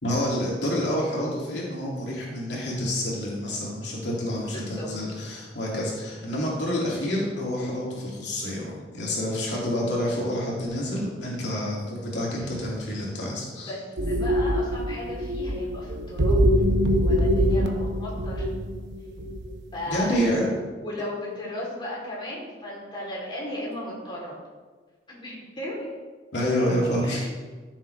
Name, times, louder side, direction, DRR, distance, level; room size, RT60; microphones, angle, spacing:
voice 1, 0.0-13.7 19.9-20.5 23.2-23.3 23.6-23.7 25.8-25.9 26.3-27.2, equal, 75° left, -4 dB, 2.5 m, -28 dB
voice 2, 4.5-4.9 12.4-12.5 13.4-16.4 17.0-18.5 19.7-20.2 20.4-24.4 25.1-25.8 27.0-27.3, left 1 dB, 25° left, -5 dB, 3.3 m, -36 dB
sound 1, 14.0-19.6 19.9-20.3, equal, 70° right, 0.9 m, -24 dB
14.5 x 7.3 x 3.3 m, 1.4 s
head